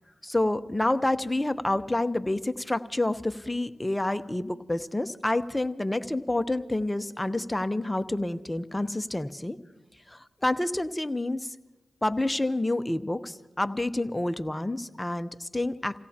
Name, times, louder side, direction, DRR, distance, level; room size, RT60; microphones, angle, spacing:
voice 1, 0.2-9.6 10.1-11.5 12.0-16.0, left 1 dB, 15° left, 10 dB, 0.9 m, -28 dB
29.5 x 17.0 x 2.9 m, 1.0 s
cardioid pair, 45°, 0 cm